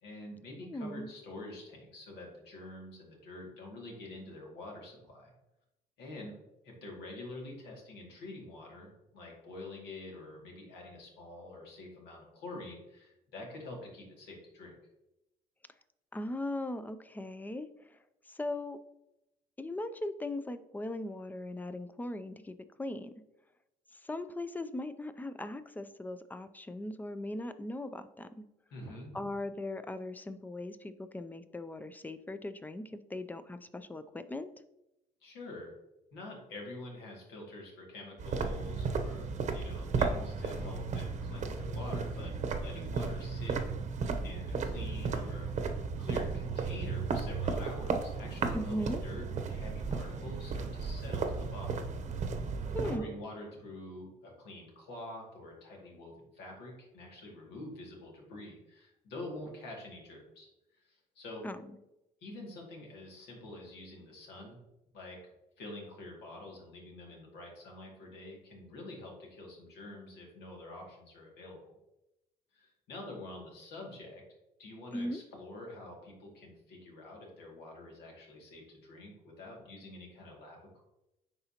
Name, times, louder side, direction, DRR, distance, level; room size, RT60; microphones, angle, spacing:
voice 1, 0.0-5.3 6.0-6.3 6.6-14.7 28.7-29.3 35.2-35.7 36.1-43.6 44.2-45.5 46.0-51.8 52.8-60.5 60.9-61.5 62.2-64.6 64.9-65.2 65.6-71.8 72.5-74.2 74.6-80.8, left 2 dB, 80° left, -1 dB, 2.2 m, -46 dB
voice 2, 0.6-1.1 16.1-18.0 18.3-18.8 19.6-23.1 24.0-28.5 29.1-34.5 48.5-49.0 52.7-53.0 61.4-61.6 74.9-75.2, left 1 dB, 10° left, 11 dB, 0.4 m, -39 dB
sound 1, 38.2-53.0, right 4 dB, 45° right, 0.8 m, -34 dB
9.8 x 3.9 x 2.9 m, 0.90 s
cardioid pair, 110°, 17 cm